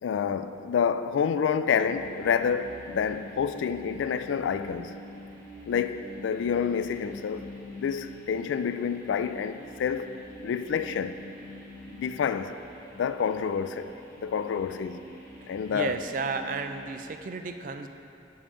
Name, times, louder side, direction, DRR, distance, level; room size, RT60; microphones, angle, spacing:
voice 1, 0.0-4.9 5.7-10.1 10.4-11.2 11.9-12.5 12.9-13.9 14.2-15.0 15.5-15.9, left 7 dB, 85° left, 0.3 m, -28 dB
sound 1, 1.7-17.0, left 1 dB, 20° left, 1.7 m, -46 dB
voice 2, 15.7-17.9, right 4 dB, 45° right, 0.3 m, -33 dB
6.8 x 5.4 x 5.0 m
head